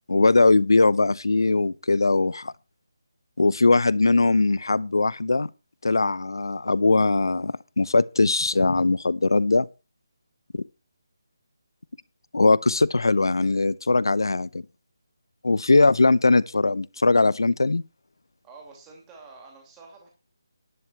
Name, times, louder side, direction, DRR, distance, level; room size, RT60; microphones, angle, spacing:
voice 1, 0.1-2.5 3.4-5.5 5.8-9.7 10.5-10.6 12.3-14.6 15.4-17.8, left 3 dB, 85° left, 0.6 m, -20 dB
voice 2, 18.4-20.1, right 4 dB, 10° right, 2.6 m, -48 dB
11.0 x 4.6 x 8.1 m
figure-of-eight pair, 165°, 2 cm